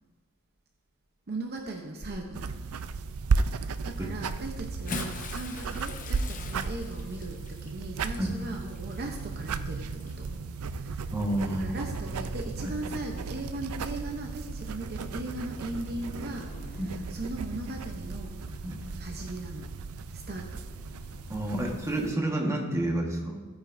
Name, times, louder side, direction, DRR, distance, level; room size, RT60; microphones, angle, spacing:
voice 1, 1.3-2.6 3.6-10.3 10.8-11.1 11.6-18.4 19.0-19.7 20.1-20.6, right 2 dB, 45° right, 3 dB, 0.8 m, -38 dB
sound 1, 2.3-22.1, right 4 dB, 70° right, 0.4 m, -35 dB
Bathtub (filling or washing) / Splash splatter, 4.7-10.3 11.2-11.4 12.9-13.0, left 4 dB, 35° left, 0.8 m, -42 dB
sound 2, 9.0-21.8, left 1 dB, 75° left, 1.4 m, -49 dB
voice 2, 11.1-11.6 12.0-12.1 12.6-12.7 16.8-16.9 18.6-18.8 21.3-23.5, right 1 dB, 15° right, 0 dB, 1.4 m, -30 dB
16.0 x 9.1 x 2.6 m, 1.5 s
head